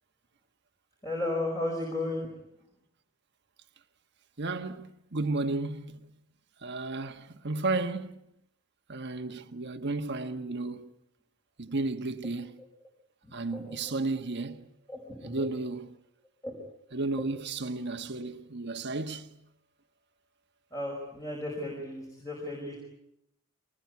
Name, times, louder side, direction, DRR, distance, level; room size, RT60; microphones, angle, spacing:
voice 1, 1.0-2.2 13.2-13.9 14.9-15.5 16.4-16.6 20.7-22.8, left 2 dB, 15° left, 5.2 m, -34 dB
voice 2, 4.4-6.0 6.6-8.2 8.9-10.9 11.6-12.6 13.3-14.7 15.2-15.9 16.9-19.3, right 3 dB, 55° right, 1.3 m, -33 dB
23.5 x 20.0 x 9.5 m
head